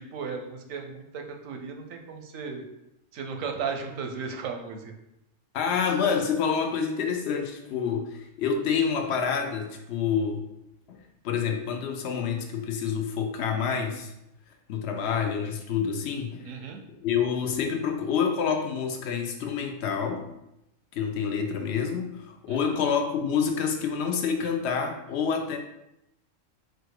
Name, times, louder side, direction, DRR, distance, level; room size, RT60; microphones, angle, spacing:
voice 1, 0.0-2.6 3.1-4.9 16.5-16.8 22.5-22.8, right 5 dB, 85° right, 4 dB, 1.1 m, -35 dB
voice 2, 5.5-10.4 10.9-11.0 11.2-14.1 14.7-16.5 17.0-20.3 20.9-25.6, left 6 dB, 60° left, 5 dB, 0.8 m, -27 dB
4.3 x 2.4 x 4.7 m, 0.86 s
omnidirectional pair, 1.3 m